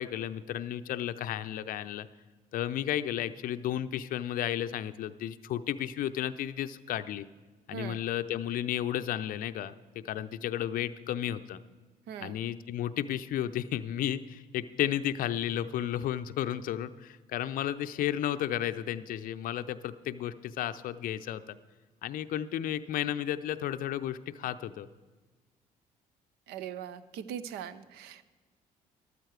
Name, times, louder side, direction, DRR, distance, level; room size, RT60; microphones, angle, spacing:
voice 1, 0.0-2.1 2.5-7.3 7.7-11.6 12.2-21.6 22.0-24.9, left 11 dB, 45° left, 12 dB, 0.6 m, -33 dB
voice 2, 12.1-12.4 26.5-28.2, right 9 dB, 60° right, 15 dB, 0.7 m, -40 dB
13.5 x 13.0 x 4.7 m, 1.3 s
figure-of-eight pair, 45°, 19 cm